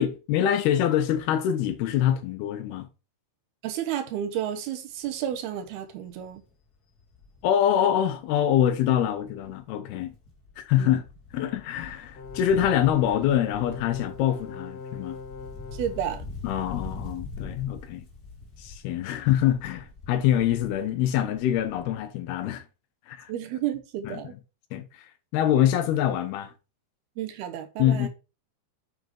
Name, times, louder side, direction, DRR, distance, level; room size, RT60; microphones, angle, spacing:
voice 1, 0.0-2.9 7.4-10.1 10.6-11.0 11.3-15.2 16.4-18.0 18.6-22.6 23.1-23.3 24.0-24.2 24.7-25.1 25.3-26.5 27.8-28.1, left 10 dB, 75° left, 2.8 m, -25 dB
voice 2, 3.6-6.4 10.8-11.0 15.7-16.3 23.3-24.3 27.2-28.1, right 10 dB, 75° right, 2.9 m, -31 dB
Wind, 5.0-5.3 5.7-5.8 6.1-9.6 9.9-22.1 22.4-22.5, left 3 dB, 35° left, 1.7 m, -44 dB
sound 1, 12.1-16.0, left 4 dB, 50° left, 2.2 m, -41 dB
7.8 x 6.7 x 4.6 m
omnidirectional pair, 4.8 m